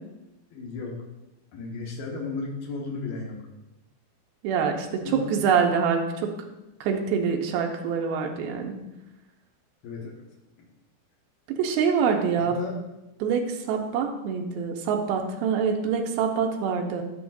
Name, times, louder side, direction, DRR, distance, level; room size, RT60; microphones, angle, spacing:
voice 1, 0.5-1.0 1.5-3.4 5.0-5.3 9.8-10.2 12.5-12.8, left 3 dB, 80° left, -2 dB, 3.0 m, -34 dB
voice 2, 4.4-6.3 6.8-8.8 11.5-12.6 13.2-17.0, right 6 dB, 90° right, 3 dB, 2.6 m, -25 dB
12.0 x 7.0 x 2.5 m, 0.97 s
omnidirectional pair, 4.3 m